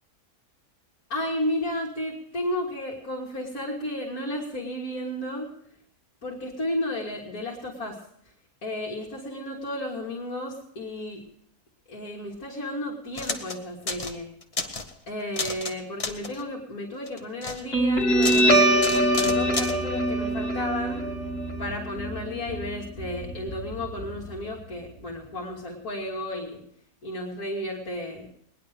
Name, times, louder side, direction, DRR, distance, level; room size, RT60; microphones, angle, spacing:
voice 1, 1.1-5.5 6.2-8.0 8.6-11.2 11.9-14.3 15.1-18.7 19.1-21.1 21.6-26.6 27.0-28.3, left 1 dB, 70° left, -3 dB, 2.4 m, -33 dB
sound 1, 13.1-13.6 13.9-14.2 14.4-14.9 15.3-15.7 16.0-16.4 17.1-17.6 18.2-18.5 18.8-19.8, left 3 dB, 25° left, 1.0 m, -31 dB
Guitar, 17.7-24.7, right 1 dB, 50° left, 2.7 m, -24 dB
19.5 x 10.5 x 5.0 m, 0.69 s
omnidirectional pair, 1.6 m